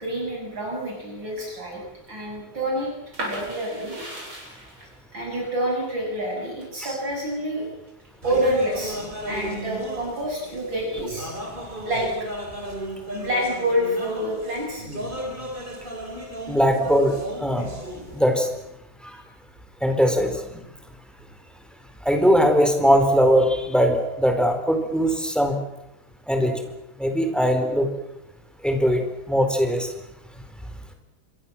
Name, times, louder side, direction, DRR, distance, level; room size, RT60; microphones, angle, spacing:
voice 1, 0.0-1.8 2.1-2.9 3.2-3.9 5.1-7.7 8.2-9.0 9.3-11.3 11.6-12.1 13.1-14.9, equal, 65° right, -1 dB, 8.4 m, -27 dB
sound 1, 3.1-8.8 9.2-10.1, right 1 dB, 80° right, 9.1 m, -37 dB
sound 2, 8.2-18.7, equal, 25° right, 4.4 m, -35 dB
voice 2, 16.5-17.7 18.1-18.5 19.0-19.2 19.8-20.6 22.0-25.6 26.3-26.6 27.0-27.9 28.6-29.0 29.3-29.9, equal, ahead, 5 dB, 4.3 m, -20 dB
27.0 x 23.0 x 7.5 m, 0.88 s
omnidirectional pair, 2.2 m